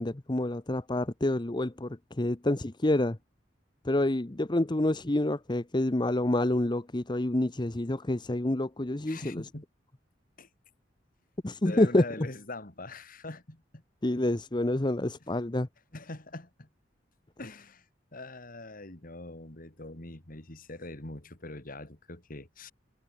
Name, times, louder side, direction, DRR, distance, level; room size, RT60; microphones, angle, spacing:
voice 1, 0.0-3.2 3.8-9.4 11.4-12.0 14.0-15.7, left 1 dB, 25° left, 0.9 m, -28 dB
voice 2, 9.1-9.6 10.4-10.5 11.6-13.6 15.9-16.7 17.4-17.8 18.1-22.7, left 2 dB, 50° left, 2.6 m, -43 dB
head